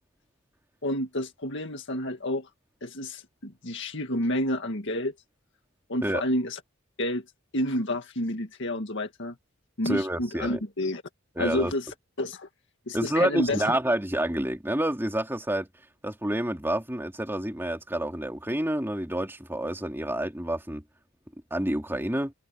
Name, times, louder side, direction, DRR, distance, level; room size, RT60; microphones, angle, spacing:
voice 1, 0.8-2.5 2.8-5.1 5.9-6.6 7.0-7.2 7.5-9.4 9.8-11.0 11.4-11.9 12.2-12.5 12.9-13.7, left 1 dB, 55° left, 2.0 m, -29 dB
voice 2, 9.8-10.6 11.4-11.7 12.9-15.7 16.0-20.8 21.5-22.3, right 1 dB, 10° right, 2.9 m, -28 dB
head